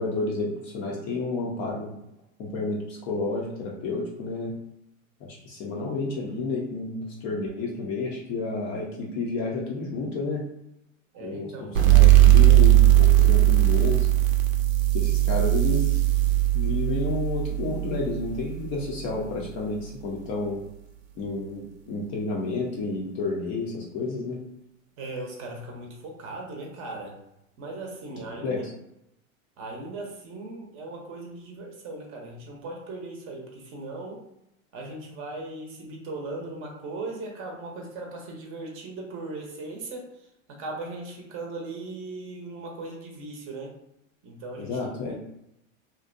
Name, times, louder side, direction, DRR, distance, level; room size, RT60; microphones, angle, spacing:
voice 1, 0.0-2.0 2.4-4.5 5.2-10.5 11.2-14.1 14.9-16.0 16.5-20.6 21.2-24.4 28.4-28.6 44.6-45.1, left 3 dB, 30° left, -2 dB, 0.4 m, -30 dB
voice 2, 11.1-11.8 25.0-27.1 27.6-28.6 29.6-34.2 34.7-40.1 40.5-43.8 44.2-45.1, right 2 dB, 30° right, 0 dB, 0.6 m, -38 dB
sound 1, 11.8-19.0, right 14 dB, 80° right, 0.6 m, -19 dB
2.6 x 2.1 x 2.5 m, 0.84 s
hypercardioid pair, 115°, 41 cm